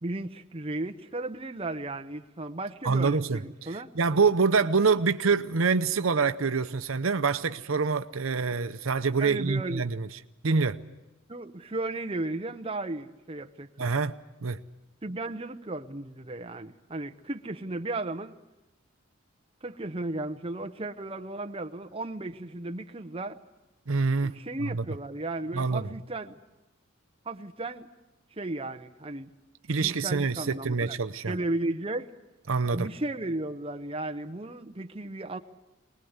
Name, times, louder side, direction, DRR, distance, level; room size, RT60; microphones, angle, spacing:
voice 1, 0.0-3.9 9.2-9.9 11.3-13.9 15.0-18.4 19.6-23.4 24.2-26.4 27.2-27.9 28.4-29.3 29.8-31.0 31.3-32.1 32.7-35.4, right 2 dB, 25° right, 0.9 m, -35 dB
voice 2, 2.8-10.1 10.4-10.8 13.8-14.1 14.4-14.6 23.9-24.9 25.5-25.8 29.7-31.3 32.5-32.9, right 4 dB, 75° right, 0.8 m, -26 dB
24.0 x 20.0 x 8.1 m
head